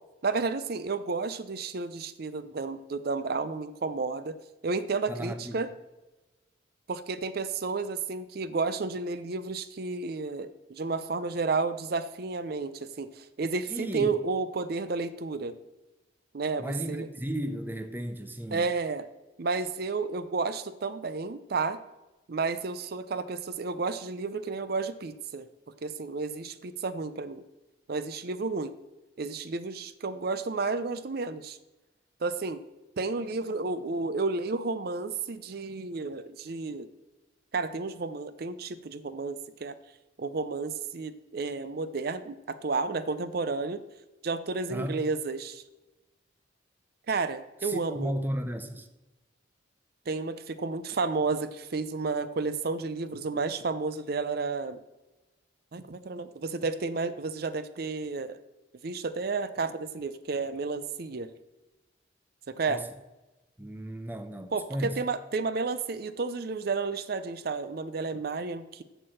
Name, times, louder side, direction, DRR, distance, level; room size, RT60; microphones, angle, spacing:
voice 1, 0.2-4.4 4.6-5.7 6.9-15.5 16.3-17.1 18.5-19.0 19.4-21.8 22.3-25.5 25.8-27.4 27.9-28.7 29.2-31.6 32.2-32.6 33.0-36.9 37.5-39.8 40.2-43.8 44.2-45.6 47.1-48.1 50.1-54.8 55.7-58.4 58.8-61.3 62.5-62.8 64.5-68.8, right 4 dB, 50° right, 0.5 m, -31 dB
voice 2, 5.1-5.6 13.7-14.1 16.6-18.7 44.7-45.0 47.6-48.9 62.7-62.9 63.6-65.0, equal, 10° right, 0.6 m, -34 dB
8.5 x 6.8 x 7.7 m
head